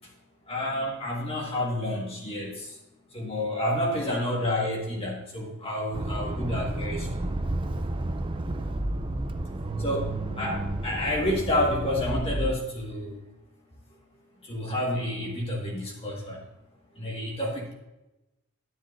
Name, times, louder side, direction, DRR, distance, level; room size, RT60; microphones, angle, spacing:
voice 1, 0.5-2.7 3.1-7.2 9.8-10.1 10.4-13.1 14.5-16.4 17.0-17.7, left 1 dB, 25° left, -2 dB, 1.6 m, -29 dB
Accelerating revving vroom, 5.9-12.5, right 1 dB, 25° right, 0.5 m, -31 dB
10.0 x 9.7 x 2.6 m, 0.95 s
head